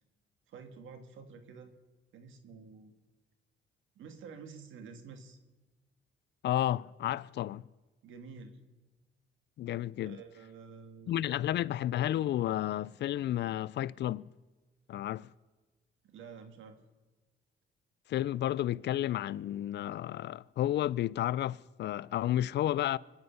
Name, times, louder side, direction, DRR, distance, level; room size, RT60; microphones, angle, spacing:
voice 1, 0.5-1.7 2.1-2.9 3.9-5.4 8.0-8.6 10.0-11.4 16.0-16.8, right 5 dB, 80° right, 1.8 m, -49 dB
voice 2, 6.4-7.6 9.6-10.2 11.1-14.3 14.9-15.3 18.1-23.0, left 12 dB, 60° left, 0.4 m, -32 dB
24.5 x 9.7 x 5.6 m
cardioid pair, 90°, 20 cm